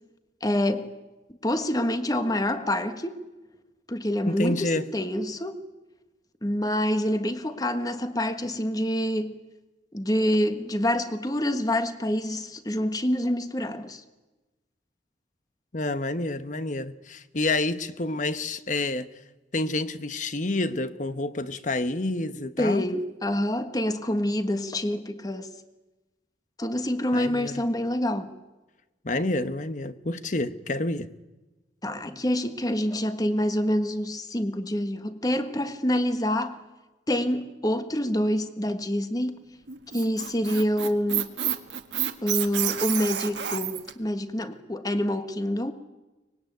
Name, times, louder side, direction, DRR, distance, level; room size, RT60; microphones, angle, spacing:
voice 1, 0.4-0.9 1.4-3.2 3.9-5.6 6.4-9.3 9.9-14.0 22.6-25.5 26.6-28.3 31.8-36.6 37.1-39.4 39.9-41.3 42.2-45.7, left 1 dB, 20° left, 1.4 m, -27 dB
voice 2, 4.2-4.9 15.7-19.1 19.5-22.8 27.1-27.6 29.0-31.1, left 2 dB, 45° left, 1.1 m, -28 dB
Squeak, 39.7-43.9, right 11 dB, 80° right, 1.6 m, -29 dB
24.0 x 21.0 x 9.4 m
head